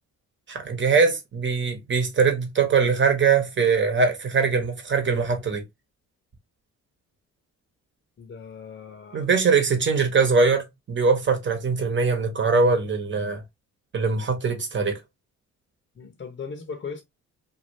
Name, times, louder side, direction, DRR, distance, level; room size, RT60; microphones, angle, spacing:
voice 1, 0.5-5.6 9.1-13.4 13.9-15.0, right 5 dB, 40° right, 1.2 m, -22 dB
voice 2, 8.2-9.6 16.0-17.0, left 5 dB, 35° left, 0.8 m, -38 dB
2.7 x 2.7 x 3.0 m
cardioid pair, 90°, 30 cm